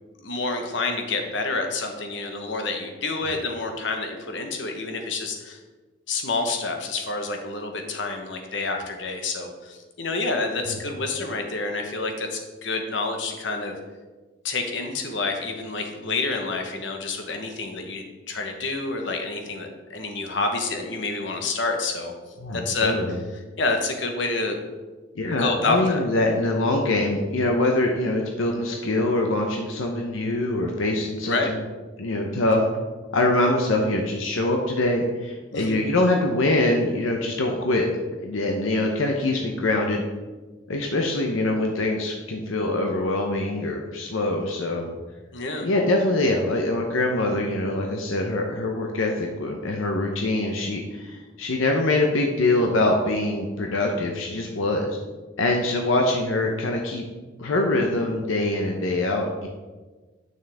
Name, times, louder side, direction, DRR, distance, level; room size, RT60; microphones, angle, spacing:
voice 1, 0.2-5.6 6.1-13.7 14.4-22.1 22.6-22.9 23.6-24.6 25.4-26.0 31.2-31.5 35.5-35.8 45.3-45.7, left 3 dB, 65° left, 4 dB, 1.1 m, -28 dB
voice 2, 22.4-23.2 25.1-31.6 32.0-32.6 33.1-37.9 38.2-40.0 40.7-44.9 45.6-55.0 55.4-57.0 57.4-59.5, left 2 dB, 85° left, 2 dB, 0.8 m, -24 dB
9.2 x 6.2 x 3.4 m, 1.3 s
head